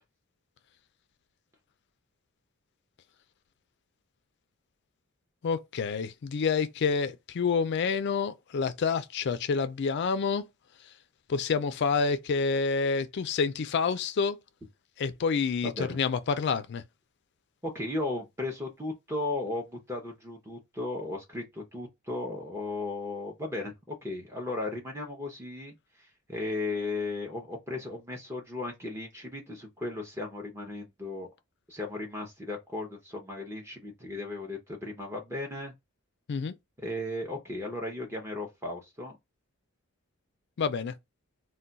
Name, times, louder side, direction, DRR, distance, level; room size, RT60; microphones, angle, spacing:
voice 1, 5.4-10.4 11.3-14.4 15.0-16.8 36.3-36.5 40.6-40.9, left 5 dB, 55° left, 0.4 m, -28 dB
voice 2, 17.6-25.8 26.3-31.3 31.7-35.7 36.8-39.2, left 2 dB, 10° right, 0.6 m, -35 dB
2.3 x 2.2 x 3.9 m
head